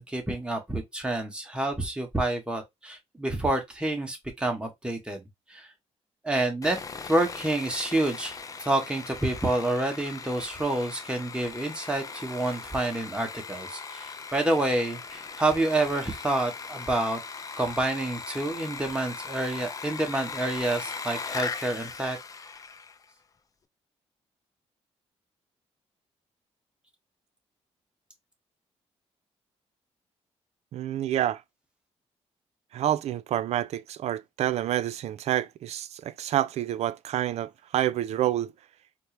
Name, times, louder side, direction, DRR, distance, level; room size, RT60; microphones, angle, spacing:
voice 1, 0.0-5.2 5.5-5.7 6.2-6.8 7.0-17.2 17.6-22.2, right 2 dB, 10° right, 1.2 m, -28 dB
Sawing, 6.6-23.0, left 5 dB, 30° left, 0.5 m, -39 dB
voice 2, 30.7-31.4 32.7-38.5, right 12 dB, 70° right, 0.4 m, -28 dB
4.3 x 2.1 x 3.2 m
cardioid pair, 110°, 12 cm